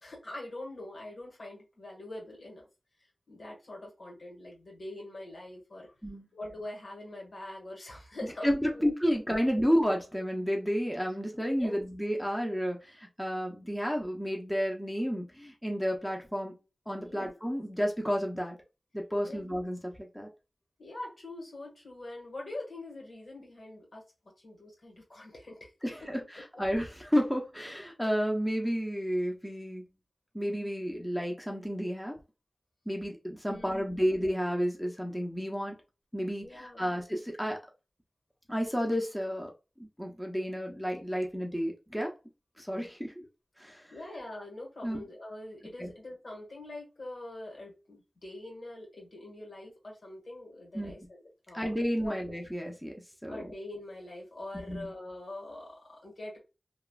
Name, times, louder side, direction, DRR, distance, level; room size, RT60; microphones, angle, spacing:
voice 1, 0.0-2.7 3.3-5.9 6.3-8.9 11.5-11.8 17.0-17.3 19.2-19.4 20.8-24.0 24.4-26.1 33.5-34.1 36.4-37.0 43.9-51.7 52.0-52.2 53.3-56.4, left 1 dB, 85° left, -1 dB, 1.5 m, -44 dB
voice 2, 8.4-16.5 16.9-18.6 18.9-20.3 25.8-29.9 30.3-32.2 32.9-35.8 36.1-37.6 38.5-39.5 39.8-42.1 42.6-43.3 43.6-43.8 44.8-45.0 45.8-45.9 50.7-50.9 51.5-52.9 53.2-53.5 54.7-54.9, equal, 5° left, 1 dB, 0.8 m, -31 dB
3.1 x 2.4 x 2.3 m, 0.29 s
wide cardioid pair, 50°, 0 cm